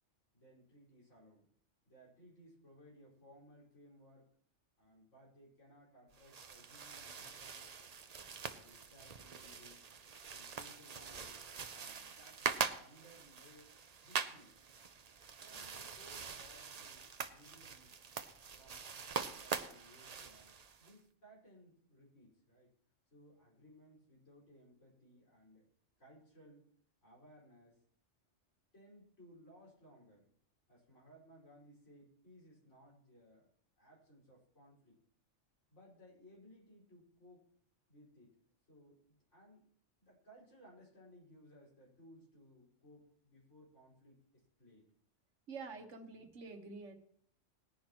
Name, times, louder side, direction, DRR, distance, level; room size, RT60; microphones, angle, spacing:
voice 1, 0.3-1.5 1.8-4.3 4.8-7.7 8.4-9.8 10.3-13.7 14.0-14.5 15.2-17.9 18.5-20.5 20.8-22.7 23.1-25.7 26.0-26.6 27.0-27.8 28.7-30.3 30.7-33.5 33.8-35.0 35.7-37.5 37.9-38.4 38.7-39.7 40.0-44.8, equal, 75° left, -5 dB, 5.4 m, -62 dB
sound 1, 6.1-20.9, right 5 dB, 40° right, 0.6 m, -44 dB
voice 2, 45.5-46.9, right 4 dB, 85° right, 5 dB, 1.5 m, -47 dB
20.0 x 10.5 x 3.0 m, 0.63 s
omnidirectional pair, 1.2 m